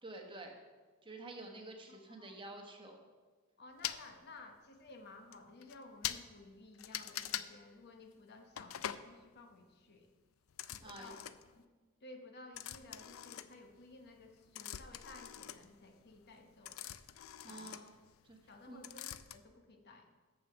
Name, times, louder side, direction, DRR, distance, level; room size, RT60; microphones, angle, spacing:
voice 1, 0.0-0.5 1.0-3.0 10.8-11.1 17.4-17.9 18.2-18.4 18.7-18.9, right 2 dB, 25° right, 2 dB, 1.1 m, -49 dB
voice 2, 1.9-2.4 3.6-10.1 10.7-11.2 11.5-11.7 12.0-16.9 17.4-17.8 18.5-20.1, left 2 dB, 55° left, 4 dB, 1.0 m, -56 dB
sound 1, 3.8-4.0 4.9-5.0 5.3-5.4 5.6-5.8 6.0-6.2 6.8-7.5 8.6-9.1 10.5-11.6 12.5-13.9 14.2-18.5 18.8-19.4, left 11 dB, 75° left, 0.4 m, -43 dB
7.2 x 6.2 x 6.9 m, 1.4 s
head